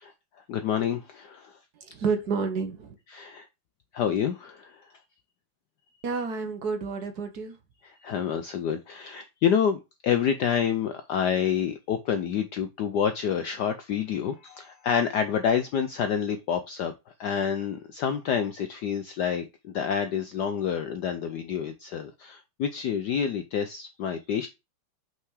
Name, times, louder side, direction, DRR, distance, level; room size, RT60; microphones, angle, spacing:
voice 1, 0.5-1.5 3.1-3.5 3.9-4.8 8.0-16.9 17.2-24.5, left 8 dB, 75° left, 0.9 m, -28 dB
voice 2, 1.7-2.9 6.0-7.6, right 5 dB, 55° right, 1.4 m, -30 dB
5.7 x 4.7 x 4.7 m
omnidirectional pair, 2.4 m